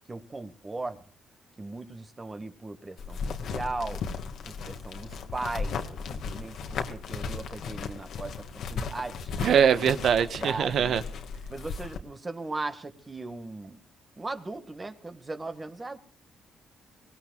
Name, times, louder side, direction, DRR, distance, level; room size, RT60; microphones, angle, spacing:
voice 1, 0.1-1.0 1.6-3.2 3.5-4.0 4.4-8.3 8.7-9.4 9.7-9.9 10.4-11.0 11.5-13.8 14.2-16.0, right 2 dB, 25° right, 1.9 m, -37 dB
sound 1, 3.0-12.0, left 5 dB, 70° left, 2.1 m, -36 dB
voice 2, 9.4-11.0, right 8 dB, 65° right, 1.4 m, -22 dB
24.5 x 18.5 x 2.5 m
cardioid pair, 90°, 0 cm